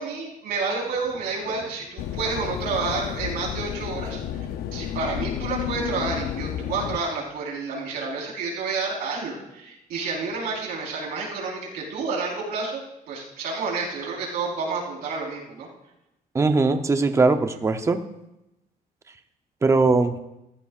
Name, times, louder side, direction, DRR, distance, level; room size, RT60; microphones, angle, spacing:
voice 1, 0.0-4.2 4.7-12.8 13.1-15.7, right 4 dB, 85° right, -3 dB, 4.4 m, -29 dB
sound 1, 2.0-7.0, left 10 dB, 90° left, 0.7 m, -31 dB
voice 2, 16.3-18.0 19.6-20.2, right 3 dB, 20° right, 8 dB, 0.7 m, -20 dB
16.0 x 14.0 x 2.5 m, 0.90 s
cardioid pair, 145°, 16 cm